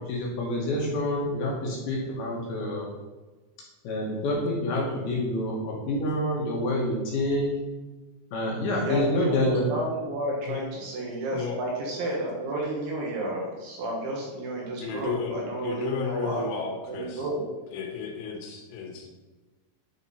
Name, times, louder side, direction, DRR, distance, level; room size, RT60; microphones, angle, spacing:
voice 1, 0.0-2.9 3.8-7.5 8.3-9.7, left 1 dB, 70° left, -3 dB, 2.4 m, -27 dB
voice 2, 8.7-16.5 16.9-17.4, right 1 dB, 70° right, -3 dB, 3.5 m, -31 dB
voice 3, 14.8-17.3 17.7-19.3, left 6 dB, 90° left, 2 dB, 4.0 m, -34 dB
10.5 x 4.3 x 4.1 m, 1.2 s
omnidirectional pair, 5.8 m